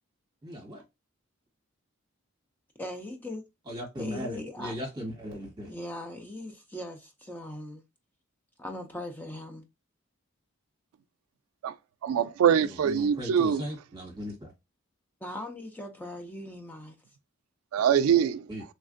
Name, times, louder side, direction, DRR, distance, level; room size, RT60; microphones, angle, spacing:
voice 1, 0.4-0.8 3.7-5.7 12.6-14.5 18.5-18.6, equal, 20° right, 1.1 m, -38 dB
voice 2, 2.8-3.5 4.0-4.8 5.7-7.8 8.6-9.6 15.2-17.0, left 1 dB, 10° left, 0.4 m, -39 dB
voice 3, 12.0-13.6 17.7-18.5, right 8 dB, 90° right, 0.3 m, -23 dB
3.2 x 2.4 x 2.5 m
head